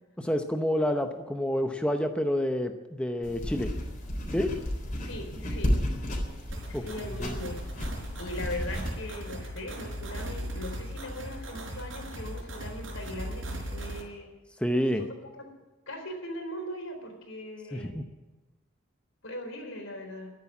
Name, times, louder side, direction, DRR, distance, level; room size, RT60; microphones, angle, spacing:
voice 1, 0.2-3.7 4.3-4.5 6.7-6.8 7.2-7.3 14.6-15.1 17.7-18.0, equal, 5° left, 6 dB, 0.7 m, -28 dB
sound 1, 3.2-8.9, equal, 40° left, 3.8 m, -33 dB
voice 2, 5.0-5.8 6.7-7.6 8.2-14.3 15.0-15.5 15.9-18.0 19.2-20.3, left 1 dB, 85° left, 4 dB, 4.1 m, -39 dB
sound 2, 6.5-14.0, equal, 75° right, 4.4 m, -38 dB
12.5 x 10.5 x 9.6 m, 1.1 s
head